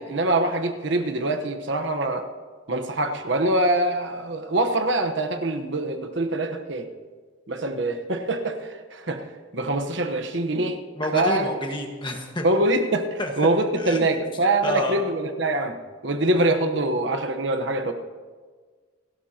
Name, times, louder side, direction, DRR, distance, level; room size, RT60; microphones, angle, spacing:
voice 1, 0.0-2.2 2.7-6.9 7.5-9.2 9.5-10.8 11.1-11.5 12.4-15.8 16.0-17.9, right 2 dB, 60° right, 6 dB, 1.1 m, -24 dB
voice 2, 10.9-12.4 13.2-13.3 13.7-14.1 14.6-15.0, left 1 dB, 25° left, 2 dB, 1.6 m, -28 dB
28.0 x 13.0 x 2.9 m, 1.5 s
head